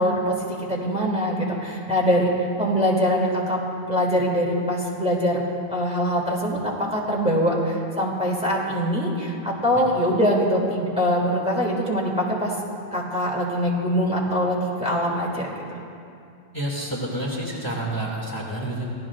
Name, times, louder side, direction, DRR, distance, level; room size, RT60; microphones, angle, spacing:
voice 1, 0.0-2.3 2.6-3.6 3.9-5.4 5.7-12.5 12.9-15.5, equal, 5° right, -4 dB, 2.5 m, -23 dB
voice 2, 16.5-18.8, right 1 dB, 20° left, -4 dB, 2.2 m, -29 dB
28.0 x 17.0 x 2.5 m, 2.5 s
omnidirectional pair, 1.0 m